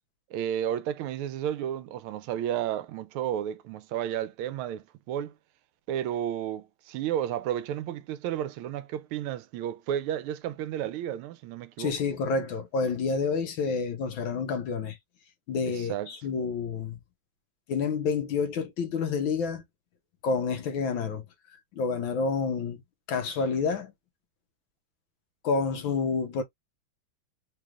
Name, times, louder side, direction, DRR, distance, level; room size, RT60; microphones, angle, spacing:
voice 1, 0.3-5.3 5.9-11.9 15.6-16.1, right 10 dB, 85° right, 1.5 m, -32 dB
voice 2, 11.8-15.0 15.5-17.0 17.7-19.6 20.2-21.2 21.7-22.8 23.1-23.9 25.4-26.4, left 5 dB, 75° left, 1.5 m, -29 dB
3.8 x 3.2 x 2.3 m
omnidirectional pair, 2.3 m